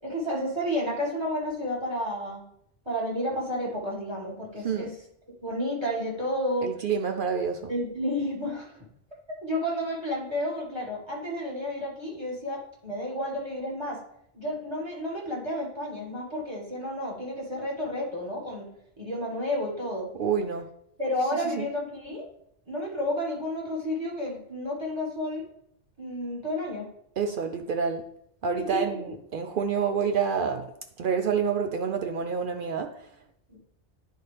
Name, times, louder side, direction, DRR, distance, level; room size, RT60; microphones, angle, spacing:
voice 1, 0.0-2.5 2.9-5.0 5.4-6.7 7.7-8.8 9.4-14.0 14.3-18.7 19.0-20.1 21.0-22.3 22.7-25.4 26.0-26.9 28.7-29.0 33.5-33.6, left 1 dB, 25° right, 1.8 m, -31 dB
voice 2, 6.6-7.7 20.2-20.7 21.5-21.6 27.2-28.1 28.4-30.7 31.0-33.0, right 6 dB, 60° right, 0.6 m, -28 dB
10.0 x 4.2 x 3.3 m
omnidirectional pair, 1.2 m